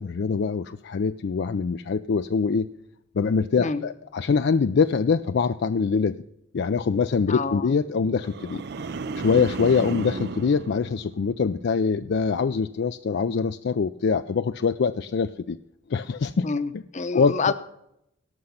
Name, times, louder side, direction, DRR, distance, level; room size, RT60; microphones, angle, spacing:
voice 1, 0.0-2.7 3.1-6.2 6.5-8.6 9.2-15.6 15.9-16.5 17.1-17.5, left 5 dB, 60° left, 10 dB, 0.4 m, -24 dB
voice 2, 7.3-7.7 16.4-17.5, left 4 dB, 40° left, 12 dB, 0.8 m, -28 dB
sound 1, 8.2-11.6 12.0-12.4, right 4 dB, 55° right, 0.5 m, -34 dB
17.5 x 6.5 x 5.6 m, 0.79 s
head